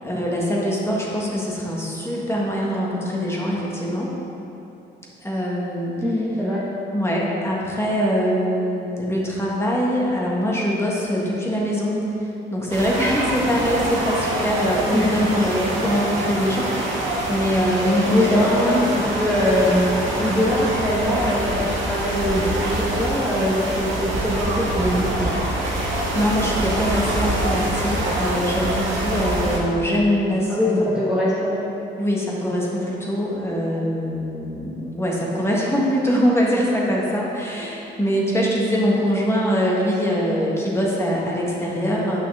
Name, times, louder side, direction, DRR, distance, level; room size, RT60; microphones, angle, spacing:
voice 1, 0.0-4.1 5.2-5.9 6.9-18.8 26.1-30.9 32.0-42.2, equal, 15° left, -4 dB, 1.6 m, -23 dB
voice 2, 6.0-6.6 14.9-15.2 18.1-19.9 20.2-25.4 30.5-31.6, left 1 dB, 5° right, -8 dB, 1.2 m, -22 dB
sound 1, 12.7-29.6, right 1 dB, 80° right, 1.4 m, -25 dB
9.0 x 5.7 x 3.6 m, 2.9 s
cardioid pair, 90°, 20 cm